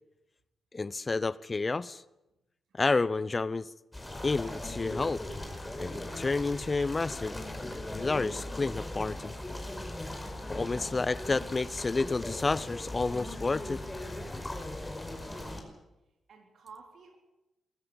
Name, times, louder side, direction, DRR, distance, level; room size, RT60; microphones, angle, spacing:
voice 1, 0.7-1.9 2.7-3.7 4.2-5.2 5.8-7.4 7.9-9.3 10.5-13.8, left 3 dB, 35° left, 0.7 m, -30 dB
sound 1, 3.9-15.6, left 1 dB, 15° left, 5.2 m, -39 dB
voice 2, 15.0-15.8 16.3-17.2, right 5 dB, 70° right, 4.0 m, -53 dB
22.5 x 13.5 x 9.0 m
supercardioid pair, 45°, 0 cm